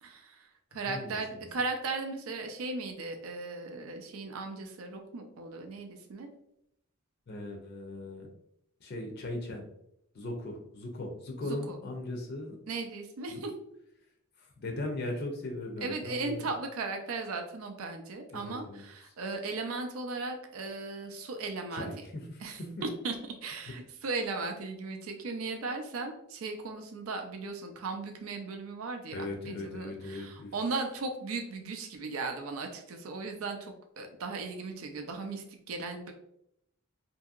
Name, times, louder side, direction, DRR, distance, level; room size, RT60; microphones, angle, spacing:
voice 1, 0.0-6.3 11.4-11.8 12.7-13.5 15.8-21.9 22.4-22.6 23.0-36.1, right 3 dB, 85° right, 5 dB, 0.4 m, -37 dB
voice 2, 0.7-1.5 7.3-8.3 8.8-9.7 10.1-12.6 13.3-13.4 14.4-16.5 18.3-18.8 21.7-22.8 29.1-30.5, left 2 dB, 50° left, 2 dB, 0.4 m, -38 dB
2.8 x 2.6 x 2.4 m, 0.75 s
head